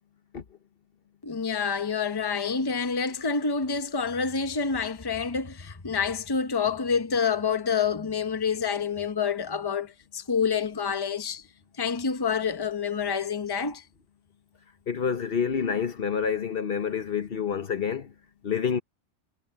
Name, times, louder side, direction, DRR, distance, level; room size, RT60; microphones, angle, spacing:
voice 1, 1.2-11.4 11.8-13.8, left 6 dB, 25° left, 0.9 m, -28 dB
voice 2, 14.9-18.1 18.4-18.8, left 7 dB, 60° left, 1.1 m, -28 dB
omnidirectional pair, 1.2 m